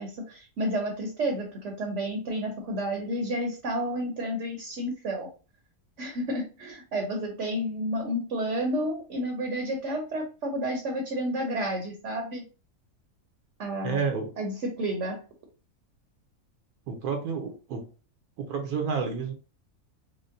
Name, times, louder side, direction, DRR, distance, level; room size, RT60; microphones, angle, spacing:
voice 1, 0.0-5.3 6.0-12.4 13.6-14.1 14.4-15.2, equal, 60° right, 3 dB, 1.0 m, -31 dB
voice 2, 13.8-14.3 16.9-17.9 18.4-19.3, right 5 dB, 80° right, 3 dB, 1.3 m, -30 dB
5.0 x 2.2 x 2.5 m, 0.35 s
omnidirectional pair, 1.6 m